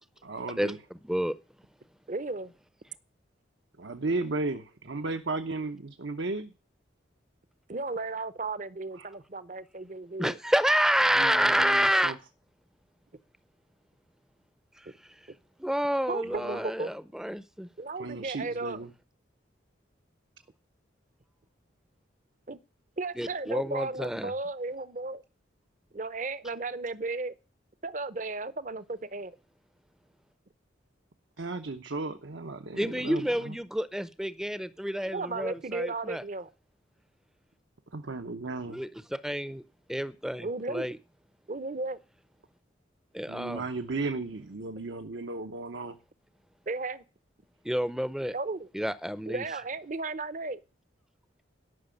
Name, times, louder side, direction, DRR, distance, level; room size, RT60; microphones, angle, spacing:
voice 1, 0.2-0.8 3.8-6.5 8.9-9.1 11.1-12.2 16.2-16.6 18.0-18.9 31.4-33.6 37.9-38.8 43.3-46.0, right 3 dB, 75° right, 0.9 m, -35 dB
voice 2, 1.0-1.3 10.2-12.1 15.6-17.7 23.2-24.3 32.8-36.2 38.7-39.6 39.9-41.0 43.1-43.6 47.6-48.3 48.7-49.4, equal, 5° right, 0.6 m, -28 dB
voice 3, 2.1-2.5 7.7-10.4 16.1-16.9 17.8-18.8 22.5-22.6 23.0-25.2 25.9-27.3 27.8-29.4 35.1-36.5 40.4-40.9 41.5-42.0 46.7-47.0 48.3-48.7 49.3-50.6, right 3 dB, 40° right, 0.7 m, -34 dB
12.0 x 6.0 x 9.1 m
head